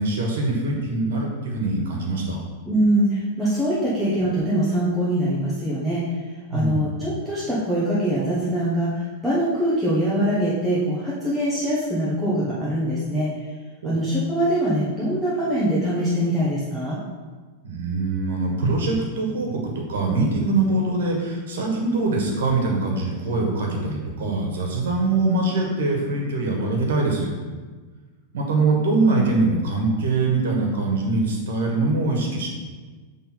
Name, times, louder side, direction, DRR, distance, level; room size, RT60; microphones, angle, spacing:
voice 1, 0.0-2.4 6.5-6.9 13.8-14.0 17.6-27.3 28.3-32.5, right 3 dB, 85° right, 0 dB, 1.4 m, -23 dB
voice 2, 2.6-6.1 6.5-13.3 13.8-17.0, right 1 dB, ahead, -10 dB, 0.9 m, -23 dB
7.4 x 3.5 x 4.5 m, 1.4 s
supercardioid pair, 165°, 0 cm